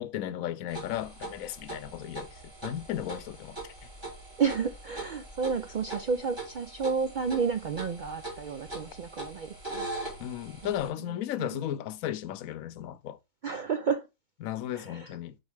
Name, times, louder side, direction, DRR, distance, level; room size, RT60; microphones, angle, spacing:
voice 1, 0.0-3.7 10.2-13.2 14.4-15.4, left 11 dB, 90° left, 1.0 m, -35 dB
sound 1, 0.7-10.9, right 2 dB, 20° right, 2.8 m, -41 dB
voice 2, 4.4-9.9 11.4-11.6 13.4-14.1 14.7-15.1, right 5 dB, 70° right, 0.4 m, -31 dB
6.3 x 4.6 x 3.3 m
omnidirectional pair, 1.4 m